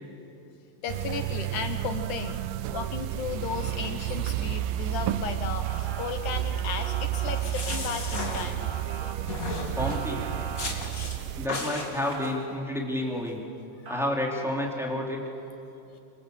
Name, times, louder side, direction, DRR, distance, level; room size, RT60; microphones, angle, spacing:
voice 1, 0.8-2.4 2.7-8.7, left 6 dB, 65° left, 7 dB, 2.1 m, -34 dB
sound 1, 0.9-11.5, right 14 dB, 75° right, 2.2 m, -31 dB
Motor vehicle (road) / Siren, 5.6-6.1 6.8-7.4 8.6-9.1 9.8-10.7 12.0-12.3 13.8-14.1, right 2 dB, 30° right, 2.4 m, -40 dB
sound 2, 7.2-8.9 9.3-10.1 10.6-11.2 11.5-12.3, left 3 dB, 25° left, 2.6 m, -35 dB
voice 2, 9.7-10.3 11.4-13.4 13.9-15.2, left 1 dB, ahead, -1 dB, 2.9 m, -30 dB
27.0 x 26.0 x 8.1 m, 2.8 s
omnidirectional pair, 4.4 m